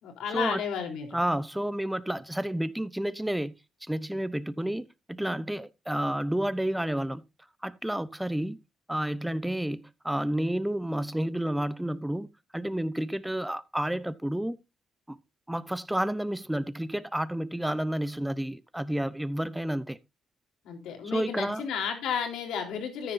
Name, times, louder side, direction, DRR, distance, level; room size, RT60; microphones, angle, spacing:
voice 1, 0.0-1.2 20.6-23.1, left 7 dB, 85° left, 3.6 m, -32 dB
voice 2, 1.1-3.6 3.8-7.2 7.6-8.6 8.9-12.3 12.5-14.6 15.1-15.2 15.5-20.0 21.0-21.6, right 1 dB, 5° right, 0.8 m, -30 dB
14.0 x 9.8 x 2.6 m
cardioid pair, 90°, 0 cm